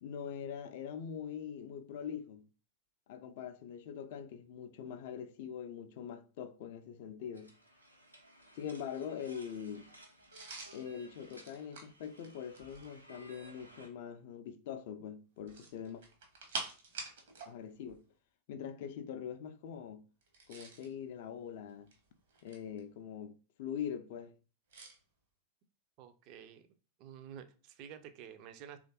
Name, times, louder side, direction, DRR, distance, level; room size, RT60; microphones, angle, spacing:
voice 1, 0.0-2.5 3.1-7.5 8.5-9.9 10.7-16.0 17.4-18.0 18.5-20.0 20.5-21.9 22.4-24.4, left 8 dB, 50° left, 0.3 m, -43 dB
sound 1, 7.3-13.9, right 1 dB, 85° right, 0.6 m, -58 dB
sound 2, 10.3-13.0 15.4-17.5 17.8-18.0 20.2-20.9 21.7-22.8 24.7-25.0, right 3 dB, 60° right, 0.9 m, -46 dB
voice 2, 26.0-26.7 27.0-28.8, right 9 dB, 40° right, 0.4 m, -50 dB
3.1 x 2.4 x 2.8 m
figure-of-eight pair, 90°, 0 cm